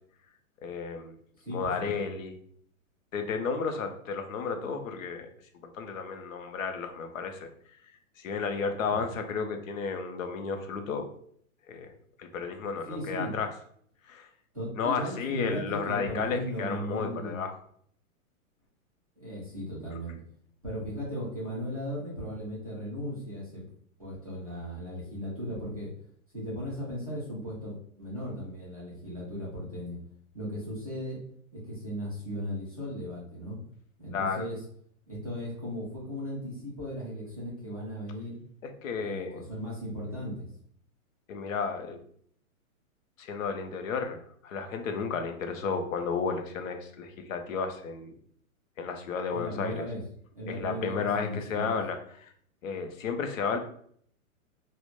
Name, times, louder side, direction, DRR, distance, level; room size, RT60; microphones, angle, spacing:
voice 1, 0.6-1.1 1.5-2.3 3.1-5.3 5.6-7.5 8.2-11.0 11.7-11.9 12.2-13.5 14.1-14.3 14.8-17.5 34.1-34.4 38.6-39.4 41.3-42.0 43.2-48.1 48.8-49.8 50.5-52.3 52.6-53.6, left 5 dB, 65° left, 6 dB, 0.5 m, -32 dB
voice 2, 1.4-1.9 8.9-9.1 12.9-13.3 14.5-17.4 19.2-20.1 20.6-23.6 24.0-25.9 26.3-30.0 30.3-31.2 31.7-33.6 34.0-34.6 35.1-38.4 39.0-40.5 49.3-50.0 50.3-51.8, equal, 30° right, -8 dB, 0.4 m, -37 dB
2.1 x 2.0 x 2.9 m, 0.63 s
hypercardioid pair, 180°, 43 cm